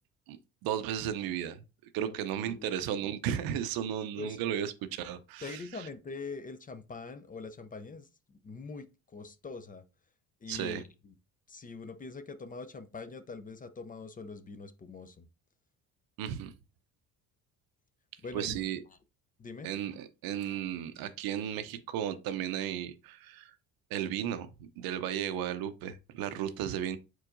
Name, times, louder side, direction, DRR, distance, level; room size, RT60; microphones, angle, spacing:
voice 1, 0.6-1.6 1.9-5.6 10.5-10.8 16.2-16.5 18.3-18.8 19.6-23.5 23.9-27.0, right 10 dB, 75° right, 0.6 m, -34 dB
voice 2, 2.0-2.7 4.2-4.4 5.4-9.8 10.4-11.2 11.5-15.3 18.2-19.0 19.4-19.7, left 4 dB, 25° left, 0.5 m, -44 dB
4.6 x 4.4 x 2.5 m
cardioid pair, 95°, 36 cm